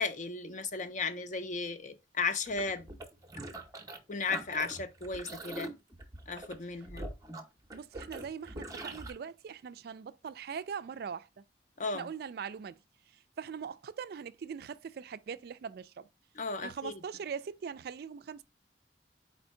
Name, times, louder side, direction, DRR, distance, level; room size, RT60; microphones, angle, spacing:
voice 1, 0.0-2.9 4.1-5.7 6.3-7.0 11.8-12.1 16.3-16.9, left 4 dB, 45° left, 0.6 m, -35 dB
sound 1, 2.5-4.0 4.3-9.1, right 2 dB, 20° right, 0.6 m, -43 dB
voice 2, 7.7-11.4 11.8-12.8 13.4-16.1 16.6-18.4, right 6 dB, 55° right, 0.3 m, -41 dB
4.3 x 2.7 x 4.2 m
head